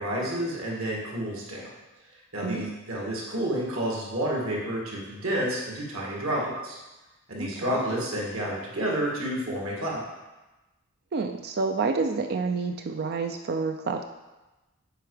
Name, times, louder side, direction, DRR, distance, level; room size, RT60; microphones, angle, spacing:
voice 1, 0.0-1.7 2.3-6.8 7.3-10.0, right 1 dB, 65° right, -3 dB, 2.0 m, -30 dB
voice 2, 7.4-7.8 11.1-14.0, right 4 dB, 45° right, 5 dB, 0.4 m, -29 dB
7.9 x 4.8 x 4.9 m, 1.1 s
head